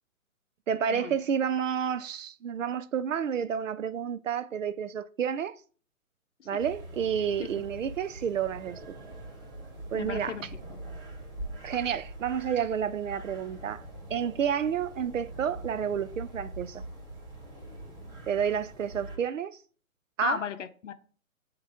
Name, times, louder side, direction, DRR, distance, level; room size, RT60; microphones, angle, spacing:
voice 1, 0.7-5.6 6.5-8.8 9.9-10.4 11.6-13.8 14.1-16.8 18.3-19.6 20.2-20.4, right 8 dB, 65° right, 0.5 m, -30 dB
sound 1, 6.6-19.2, right 1 dB, 35° right, 2.9 m, -43 dB
voice 2, 9.9-10.8 20.2-20.9, left 8 dB, 55° left, 0.8 m, -35 dB
9.1 x 3.1 x 3.6 m
figure-of-eight pair, 140°, 43 cm